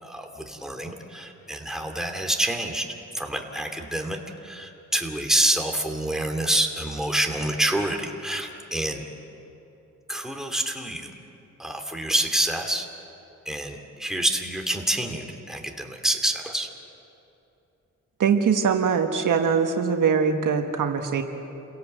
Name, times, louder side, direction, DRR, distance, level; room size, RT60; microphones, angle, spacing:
voice 1, 0.0-2.9 3.1-9.0 10.1-11.1 11.6-12.9 13.5-16.7, right 1 dB, ahead, 3 dB, 2.5 m, -27 dB
voice 2, 18.2-21.2, right 6 dB, 80° right, 5 dB, 1.6 m, -22 dB
28.5 x 17.0 x 7.9 m, 2.9 s
cardioid pair, 85°, 31 cm